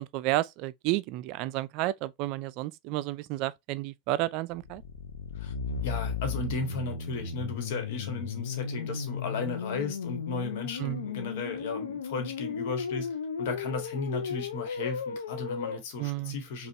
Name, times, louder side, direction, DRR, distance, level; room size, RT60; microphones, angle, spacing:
voice 1, 0.0-4.8 10.8-11.1 16.0-16.4, right 16 dB, 55° right, 0.3 m, -31 dB
sound 1, 4.5-15.8, left 5 dB, 80° left, 0.6 m, -35 dB
voice 2, 5.8-13.1 13.4-16.7, left 4 dB, 60° left, 1.4 m, -35 dB
5.2 x 2.4 x 2.6 m
hypercardioid pair, 90°, 0 cm